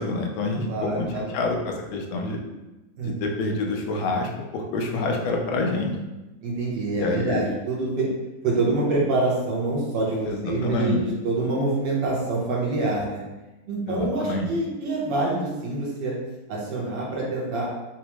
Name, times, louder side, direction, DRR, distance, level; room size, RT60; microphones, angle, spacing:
voice 1, 0.0-2.4 3.0-5.9 7.0-7.4 10.3-11.0 13.9-14.5, left 2 dB, 85° left, 2 dB, 1.4 m, -27 dB
voice 2, 0.7-1.4 3.0-3.2 6.4-8.1 8.4-11.0 11.2-13.2 13.7-16.1 16.5-17.6, right 2 dB, 75° right, -5 dB, 1.5 m, -26 dB
4.5 x 2.0 x 2.9 m, 1.1 s
omnidirectional pair, 2.1 m